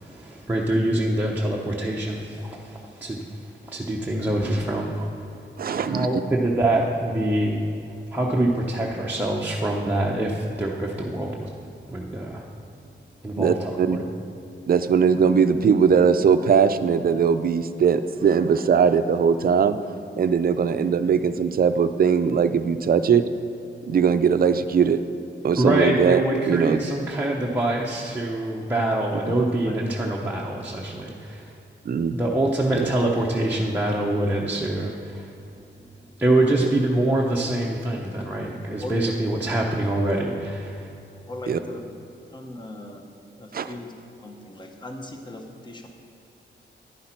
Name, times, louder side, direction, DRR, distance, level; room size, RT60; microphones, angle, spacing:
voice 1, 0.0-3.2 3.7-5.2 5.9-7.6 8.1-11.5 11.9-12.4 13.2-14.0 25.6-31.5 32.1-35.3 36.2-40.9, right 1 dB, 10° right, -4 dB, 0.7 m, -25 dB
voice 2, 5.6-6.1 13.4-14.0 14.7-19.8 20.2-23.2 23.9-25.0 25.4-26.2 26.5-26.8 29.3-29.4 31.9-32.2 32.7-32.9 36.6-36.7 41.5-41.6 43.5-43.7, right 6 dB, 50° right, 10 dB, 0.5 m, -20 dB
voice 3, 41.3-41.8 42.3-43.0 43.4-43.9 44.2-45.9, left 1 dB, 25° left, 4 dB, 0.9 m, -38 dB
11.0 x 9.9 x 4.4 m, 2.7 s
wide cardioid pair, 160°, 20 cm